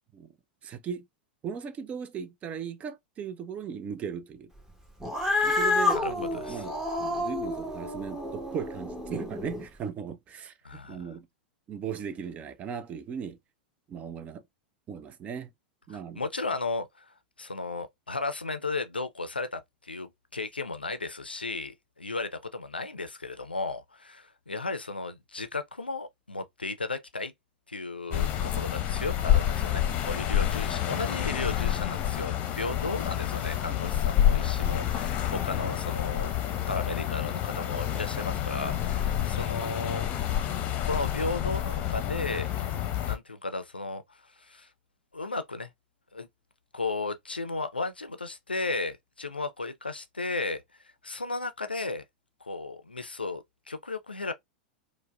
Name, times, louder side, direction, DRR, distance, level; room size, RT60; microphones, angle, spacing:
voice 1, 0.6-1.0 1.4-4.5 5.4-11.3 11.7-13.4 13.9-14.4 14.9-15.5 15.9-16.2 34.8-34.9, right 7 dB, 25° right, 0.4 m, -37 dB
Cat, 5.0-9.6, left 2 dB, 10° right, 0.9 m, -29 dB
voice 2, 5.9-6.7 10.6-11.1 15.9-27.3 27.7-36.3 36.7-40.0 40.8-42.6 43.0-44.7 45.1-45.7 46.1-46.3 46.7-50.6 51.0-52.0 52.4-54.3, left 3 dB, 85° left, 0.4 m, -35 dB
sound 1, 28.1-43.2, left 11 dB, 30° left, 0.7 m, -28 dB
4.5 x 2.1 x 2.2 m
figure-of-eight pair, 90°, 5 cm